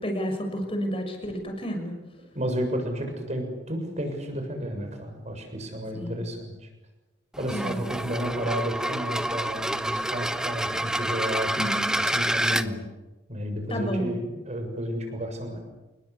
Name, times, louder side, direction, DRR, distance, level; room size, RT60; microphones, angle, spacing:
voice 1, 0.0-1.9 5.9-6.2 7.5-7.9 11.5-11.9 13.7-14.1, equal, 30° left, 4 dB, 6.4 m, -31 dB
voice 2, 2.3-6.5 7.4-11.7 12.0-12.8 13.3-15.6, equal, 40° right, 5 dB, 7.1 m, -32 dB
sound 1, 7.3-12.7, right 1 dB, 5° right, 1.0 m, -28 dB
28.0 x 21.5 x 8.4 m, 1.1 s
head